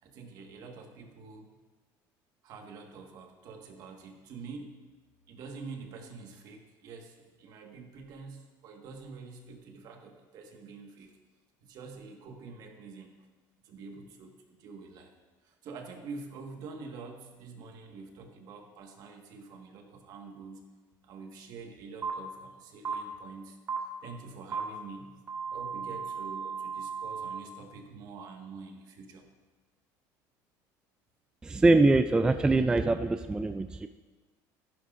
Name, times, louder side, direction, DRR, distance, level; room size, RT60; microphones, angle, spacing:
voice 1, 0.0-1.5 2.4-4.8 5.3-11.1 11.6-13.1 13.6-15.1 15.4-20.7 21.0-23.6 24.0-25.1 25.4-29.3, right 4 dB, 55° right, 3 dB, 1.6 m, -46 dB
sound 1, 22.0-22.1 22.8-22.9 23.7-23.8 24.5-24.6 25.3-27.4, right 6 dB, 30° right, 1.8 m, -35 dB
voice 2, 31.4-33.9, right 2 dB, 10° right, 9 dB, 0.3 m, -23 dB
14.5 x 11.0 x 2.6 m, 1.3 s
cardioid pair, 135°, 8 cm